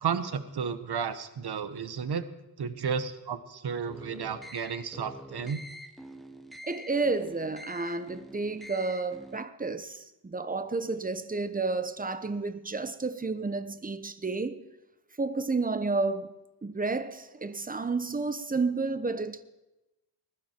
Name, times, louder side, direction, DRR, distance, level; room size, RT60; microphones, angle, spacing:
voice 1, 0.0-2.2 2.6-5.6, right 6 dB, 80° right, 1.2 m, -32 dB
sound 1, 3.9-9.4, equal, ahead, 1.2 m, -46 dB
voice 2, 6.6-14.6 15.2-16.3 16.6-19.4, right 3 dB, 20° right, 0.9 m, -31 dB
20.5 x 12.0 x 4.5 m
wide cardioid pair, 100°, 38 cm